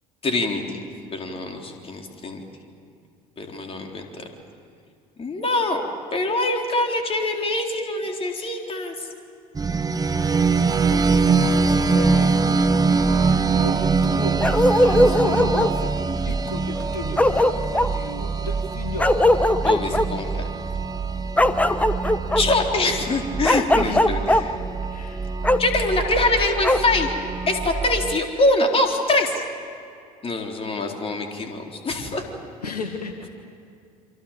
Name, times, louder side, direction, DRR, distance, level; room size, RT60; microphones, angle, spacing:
voice 1, 0.2-0.8 1.1-2.4 3.4-4.2 5.2-5.8 6.1-8.9 19.6-20.5 22.4-24.6 25.6-27.1 27.5-29.4 30.2-32.2, left 2 dB, 30° left, 2 dB, 3.9 m, -24 dB
sound 1, 9.5-28.2, right 4 dB, 20° right, 1.2 m, -23 dB
voice 2, 10.9-12.5 12.9-16.0 16.2-19.1 23.8-24.1 24.9-25.3 32.6-33.3, left 3 dB, 80° left, 6 dB, 1.6 m, -34 dB
Bark, 14.4-15.7 16.8-16.9 17.2-17.9 19.0-20.1 21.4-22.4 23.4-24.4 25.4-25.6 26.6-26.8, left 1 dB, 5° left, 1.1 m, -19 dB
28.0 x 25.0 x 7.4 m, 2.4 s
figure-of-eight pair, 60°, 20 cm